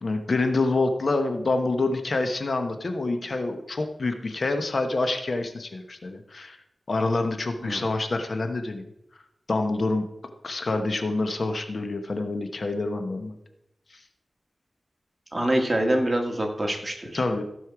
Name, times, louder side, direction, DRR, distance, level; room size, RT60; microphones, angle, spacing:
voice 1, 0.0-6.6 6.9-8.9 9.5-10.0 10.4-13.4 13.9-14.0 17.1-17.4, left 3 dB, 60° left, 7 dB, 1.1 m, -27 dB
voice 2, 15.3-17.2, right 1 dB, 25° right, 2 dB, 1.9 m, -25 dB
15.5 x 5.5 x 4.8 m, 0.82 s
wide cardioid pair, 65°, 0 cm